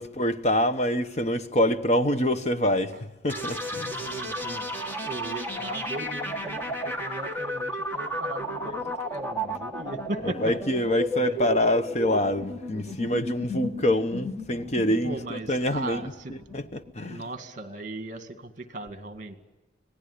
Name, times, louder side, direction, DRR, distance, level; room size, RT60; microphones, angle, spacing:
voice 1, 0.0-3.0 3.2-4.0 10.2-17.2, left 1 dB, 35° left, 1.1 m, -26 dB
sound 1, 3.3-16.9, equal, 10° left, 2.1 m, -33 dB
voice 2, 3.8-4.7 5.0-10.5 11.2-11.4 15.0-16.3 17.0-19.3, right 2 dB, 45° right, 2.2 m, -38 dB
26.0 x 18.5 x 10.0 m
head